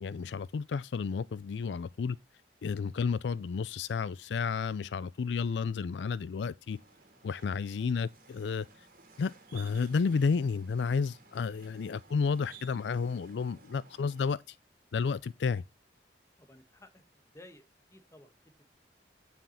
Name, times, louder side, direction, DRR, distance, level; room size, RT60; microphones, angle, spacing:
voice 1, 0.0-2.2 2.6-6.8 7.2-8.7 9.2-14.6 14.9-15.6, left 5 dB, 75° left, 0.4 m, -31 dB
sound 1, 6.7-14.3, right 5 dB, 50° right, 2.9 m, -57 dB
voice 2, 16.4-17.6 17.9-18.7, left 1 dB, 15° left, 1.3 m, -56 dB
9.4 x 5.8 x 4.2 m
head